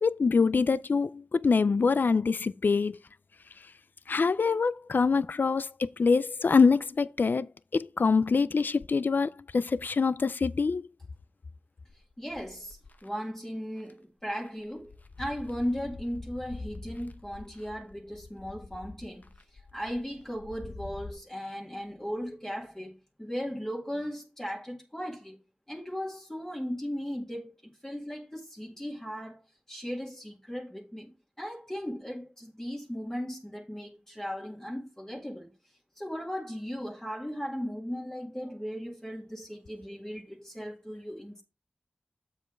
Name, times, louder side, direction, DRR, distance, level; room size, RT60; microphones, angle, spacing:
voice 1, 0.0-3.0 4.1-10.9, left 4 dB, 80° left, 0.3 m, -25 dB
sound 1, 11.9-13.1 13.8-13.9 14.2-21.1, left 3 dB, 55° left, 0.8 m, -46 dB
voice 2, 12.2-14.9 15.2-19.3 19.5-22.9 23.2-25.4 25.7-29.4 29.7-31.1 31.4-35.5 36.0-41.4, equal, 15° left, 2.0 m, -37 dB
7.5 x 4.8 x 4.5 m
wide cardioid pair, 60°, 3 cm